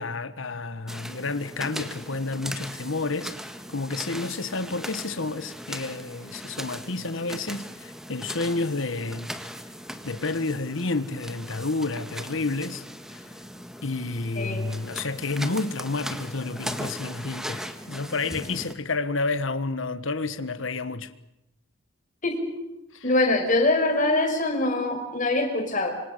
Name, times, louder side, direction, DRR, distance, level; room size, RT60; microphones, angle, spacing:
voice 1, 0.0-3.3 3.7-9.3 10.0-12.8 13.1-13.2 13.8-21.1 22.9-23.1, left 3 dB, 70° left, 1.5 m, -30 dB
sound 1, 0.9-18.7, equal, ahead, 1.6 m, -39 dB
voice 2, 22.2-22.5 23.0-25.9, left 2 dB, 40° left, 5.5 m, -23 dB
26.5 x 25.5 x 6.8 m
head